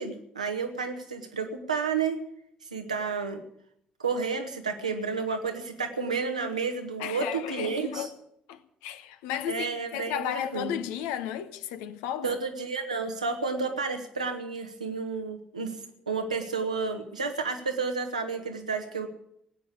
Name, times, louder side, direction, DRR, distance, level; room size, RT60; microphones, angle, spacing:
voice 1, 0.0-2.2 2.7-3.4 4.0-8.1 9.5-10.7 12.2-15.8 16.1-19.1, right 5 dB, 90° right, 1.3 m, -31 dB
voice 2, 7.0-8.1 8.5-12.4, left 10 dB, 70° left, 1.0 m, -34 dB
17.0 x 9.1 x 8.5 m
figure-of-eight pair, 45°, 4 cm